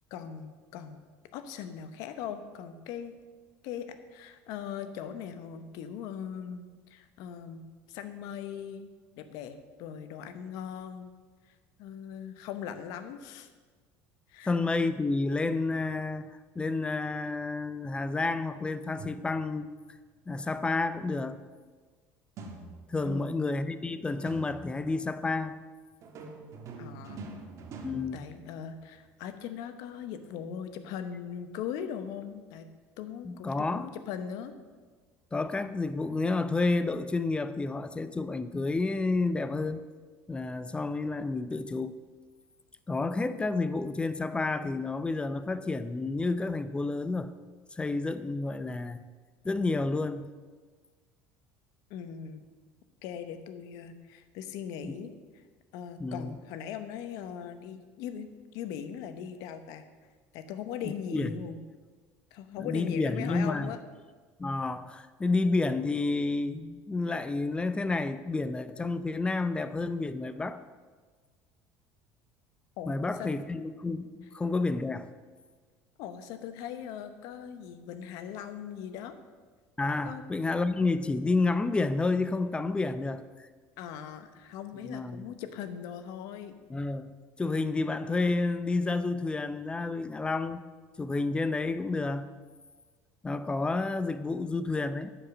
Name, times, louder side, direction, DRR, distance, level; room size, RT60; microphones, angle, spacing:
voice 1, 0.1-1.0 1.3-3.2 3.6-8.9 9.2-11.1 11.5-13.5 14.3-14.5 23.0-23.4 26.8-27.3 28.1-32.7 33.0-34.5 51.9-52.4 53.0-55.4 55.7-59.9 60.3-61.6 62.3-63.8 72.8-73.3 76.0-79.1 80.0-80.2 83.8-86.5, left 8 dB, 75° left, 10 dB, 0.9 m, -40 dB
voice 2, 14.5-16.3 16.6-19.7 20.3-21.4 22.9-25.5 27.8-28.3 33.2-33.9 35.3-39.8 40.3-42.0 42.9-47.3 47.7-49.0 49.4-50.3 54.8-54.9 56.0-56.3 60.8-61.3 62.6-63.7 64.4-70.6 72.9-75.1 79.8-83.2 84.8-85.3 86.7-87.1 87.4-90.6 91.0-92.3 93.2-95.1, left 3 dB, 15° left, 12 dB, 0.5 m, -30 dB
sound 1, 19.0-19.7 22.4-23.2 24.3-25.0 26.0-29.0, right 3 dB, 55° right, 1.4 m, -45 dB
10.0 x 4.9 x 7.1 m, 1.4 s
supercardioid pair, 100°, 6 cm